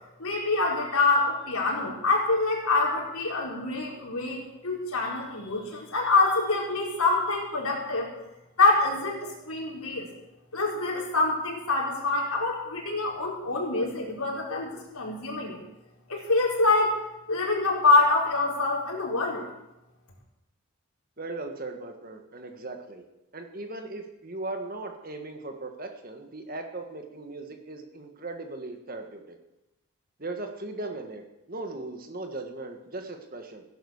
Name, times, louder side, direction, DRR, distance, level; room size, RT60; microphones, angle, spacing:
voice 1, 0.2-8.1 8.6-10.1 10.5-15.6 16.1-17.0 17.3-19.5, left 3 dB, 85° left, -1 dB, 4.6 m, -25 dB
voice 2, 21.2-23.0 23.3-29.4 30.2-33.6, right 2 dB, 40° right, 5 dB, 1.7 m, -38 dB
16.0 x 11.0 x 6.6 m, 0.95 s
head